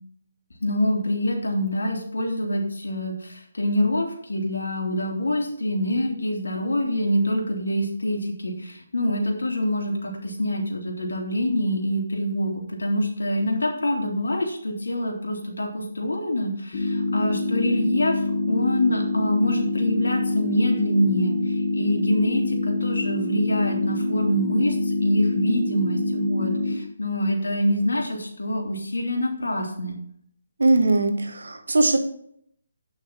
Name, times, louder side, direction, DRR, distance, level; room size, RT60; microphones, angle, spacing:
voice 1, 0.6-18.2 18.5-30.0, left 1 dB, 85° left, 1 dB, 2.8 m, -25 dB
sound 1, 16.7-26.7, left 2 dB, 50° left, 2.3 m, -25 dB
voice 2, 30.6-32.0, right 2 dB, 80° right, 6 dB, 1.6 m, -20 dB
9.7 x 6.0 x 4.4 m, 0.68 s
hypercardioid pair, 160°, 0 cm